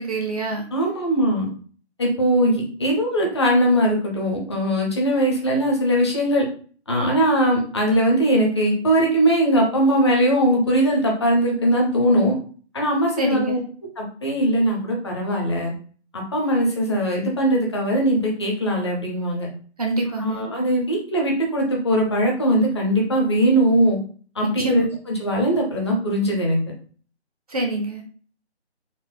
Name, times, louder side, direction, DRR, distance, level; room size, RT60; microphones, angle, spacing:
voice 1, 0.0-0.7 13.2-13.6 19.8-20.4 24.4-24.9 27.5-28.0, right 1 dB, 35° right, 1 dB, 0.7 m, -25 dB
voice 2, 0.7-1.5 2.0-6.4 6.9-12.3 12.7-13.6 14.0-15.7 16.1-19.5 20.2-24.0 24.4-24.8 25.2-26.6, right 1 dB, 25° left, -1 dB, 0.8 m, -20 dB
4.2 x 2.0 x 4.4 m, 0.43 s
figure-of-eight pair, 155°, 34 cm